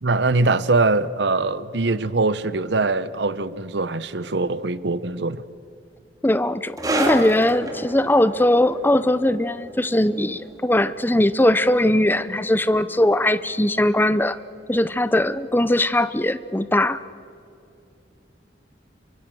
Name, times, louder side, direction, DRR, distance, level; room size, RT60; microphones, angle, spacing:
voice 1, 0.0-5.4, right 3 dB, 65° right, 15 dB, 0.8 m, -22 dB
voice 2, 6.2-14.4 14.7-17.0, left 1 dB, 10° left, 14 dB, 0.6 m, -20 dB
sound 1, 6.8-13.8 14.0-14.3 15.0-15.1, right 1 dB, 20° right, 2.7 m, -32 dB
27.5 x 24.0 x 7.7 m, 2.6 s
head